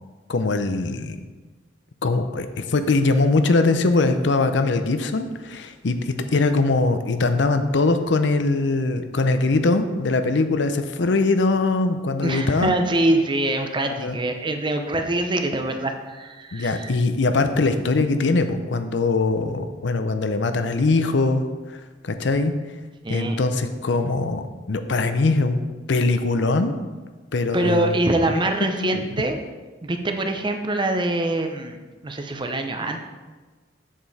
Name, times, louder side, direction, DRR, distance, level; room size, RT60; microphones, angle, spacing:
voice 1, 0.3-1.2 2.0-12.7 13.9-14.2 16.5-21.4 21.7-22.5 23.1-25.6 25.9-26.7 27.3-28.0 28.9-29.0, left 3 dB, 65° left, 8 dB, 0.6 m, -22 dB
voice 2, 12.2-16.9 23.0-23.4 27.5-29.4 29.8-31.8 32.0-33.2, right 2 dB, 25° right, 5 dB, 0.6 m, -24 dB
7.4 x 6.9 x 4.1 m, 1.3 s
head